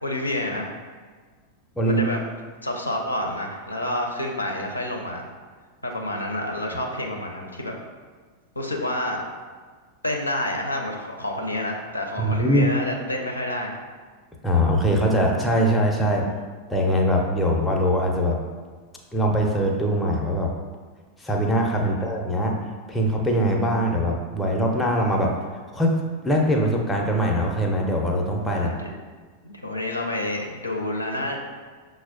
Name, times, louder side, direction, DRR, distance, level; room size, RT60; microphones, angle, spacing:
voice 1, 0.0-0.8 1.8-2.2 2.6-5.2 5.8-7.7 8.6-9.2 10.0-13.8 16.0-16.2 21.9-22.0 28.5-28.9 29.4-31.4, left 1 dB, 85° left, 0 dB, 0.4 m, -29 dB
voice 2, 12.2-12.7 14.4-16.2 16.7-18.4 19.1-20.5 21.2-22.5 22.9-25.3 25.7-25.9 26.2-28.7, equal, 5° left, -1 dB, 0.5 m, -22 dB
5.9 x 2.0 x 2.4 m, 1.5 s
figure-of-eight pair, 90°, 0 cm